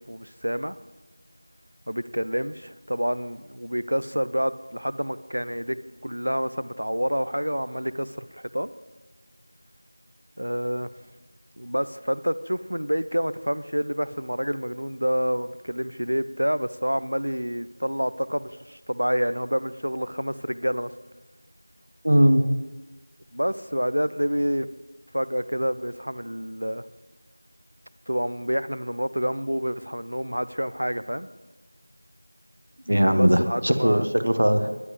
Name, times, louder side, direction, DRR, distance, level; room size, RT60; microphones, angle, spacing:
voice 1, 0.1-0.8 1.9-5.8 6.0-8.7 10.4-10.9 11.6-20.9 23.3-24.7 25.1-26.8 28.1-31.3 33.1-34.1, equal, 70° right, 15 dB, 0.6 m, -28 dB
voice 2, 22.0-22.4 32.9-34.7, equal, 45° right, 9 dB, 1.0 m, -19 dB
19.0 x 11.0 x 3.2 m, 1.1 s
figure-of-eight pair, 175°, 0 cm